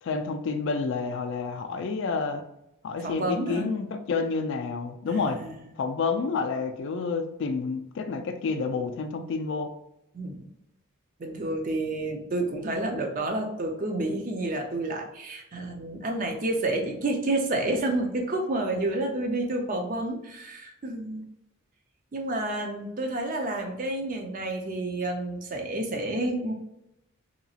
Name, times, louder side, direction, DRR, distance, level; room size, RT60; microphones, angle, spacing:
voice 1, 0.0-2.4 2.8-5.4 5.8-9.7, left 4 dB, 55° left, 6 dB, 0.3 m, -29 dB
voice 2, 3.0-3.7 5.1-5.6 10.1-10.5 11.2-21.2 22.1-26.5, right 2 dB, 40° right, 3 dB, 0.4 m, -29 dB
2.8 x 2.3 x 2.7 m, 0.85 s
head